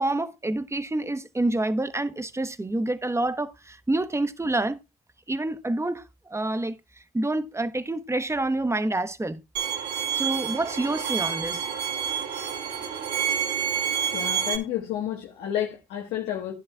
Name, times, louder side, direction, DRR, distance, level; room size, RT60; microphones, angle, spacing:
voice 1, 0.0-4.8 5.3-6.8 7.1-9.4 10.1-11.6, right 2 dB, 15° right, 1.1 m, -27 dB
Bowed string instrument, 9.6-14.6, right 8 dB, 85° right, 2.4 m, -28 dB
voice 2, 14.1-16.5, left 11 dB, 85° left, 1.4 m, -30 dB
13.5 x 11.0 x 2.4 m
hypercardioid pair, 45°, 17 cm